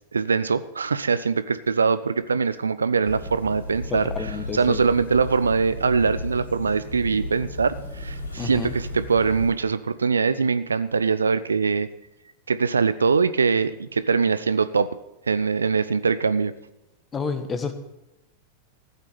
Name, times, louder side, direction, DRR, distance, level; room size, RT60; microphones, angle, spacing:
voice 1, 0.1-4.1 4.5-11.9 12.5-14.9 15.3-16.5, right 5 dB, 75° right, 16 dB, 0.5 m, -22 dB
sound 1, 3.0-9.5, left 1 dB, 80° left, 5.1 m, -34 dB
voice 2, 3.9-4.8 8.4-8.7 17.1-17.7, left 5 dB, 20° left, 9 dB, 1.5 m, -30 dB
14.5 x 8.2 x 6.8 m, 0.94 s
figure-of-eight pair, 90°, 0 cm